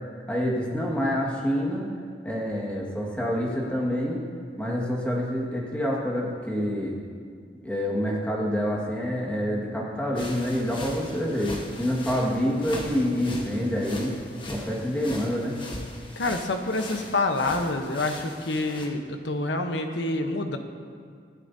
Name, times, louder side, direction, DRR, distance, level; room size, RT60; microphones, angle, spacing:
voice 1, 0.3-1.8 2.2-4.2 4.6-6.9 7.6-14.1 14.5-15.6, equal, 10° left, -4 dB, 1.8 m, -27 dB
sound 1, 10.1-18.9, left 1 dB, 25° left, 1.3 m, -40 dB
voice 2, 16.2-20.6, left 2 dB, 80° left, 5 dB, 1.0 m, -27 dB
25.0 x 9.8 x 2.8 m, 2.1 s
head